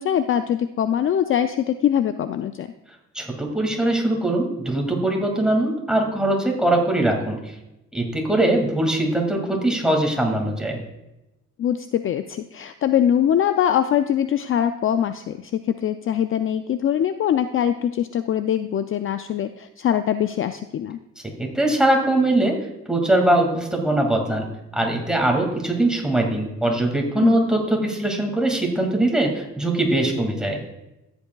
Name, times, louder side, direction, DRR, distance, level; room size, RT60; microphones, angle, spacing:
voice 1, 0.0-2.7 11.6-21.0 27.2-27.4, left 9 dB, 45° left, 10 dB, 0.4 m, -22 dB
voice 2, 3.1-7.5 7.9-10.8 21.2-22.6 22.9-24.5 24.7-30.6, right 1 dB, ahead, 1 dB, 2.1 m, -21 dB
14.0 x 8.0 x 2.3 m, 0.95 s
cardioid pair, 90°, 30 cm